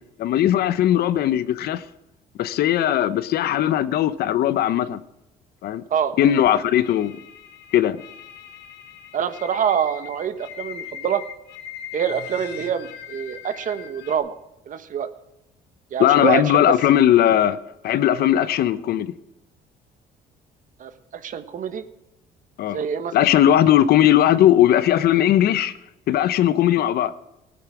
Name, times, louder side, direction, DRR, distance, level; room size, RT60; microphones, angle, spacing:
voice 1, 0.2-1.8 2.4-5.0 5.6-5.8 6.2-7.2 7.7-8.0 16.0-17.6 17.8-19.1 22.6-22.8 23.1-25.7 26.1-27.1, left 11 dB, 65° left, 0.9 m, -18 dB
sound 1, 6.8-14.2, left 9 dB, 85° left, 1.5 m, -40 dB
voice 2, 9.1-11.2 11.9-14.3 14.7-15.1 15.9-16.7 20.8-21.8 22.7-23.1, right 8 dB, 50° right, 1.3 m, -25 dB
17.0 x 9.5 x 6.2 m
cardioid pair, 110°, 17 cm